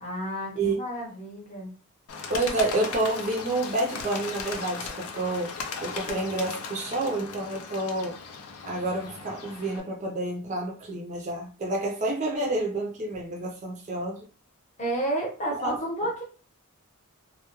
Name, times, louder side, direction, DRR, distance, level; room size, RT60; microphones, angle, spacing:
voice 1, 0.0-1.7 14.8-16.2, right 1 dB, 30° left, -1 dB, 0.8 m, -31 dB
Bird, 2.1-9.8, left 5 dB, 90° left, 0.5 m, -37 dB
voice 2, 2.3-5.5 5.8-8.2 8.7-14.2 15.6-15.8, right 2 dB, 35° right, -1 dB, 0.4 m, -29 dB
2.2 x 2.0 x 2.9 m, 0.37 s
head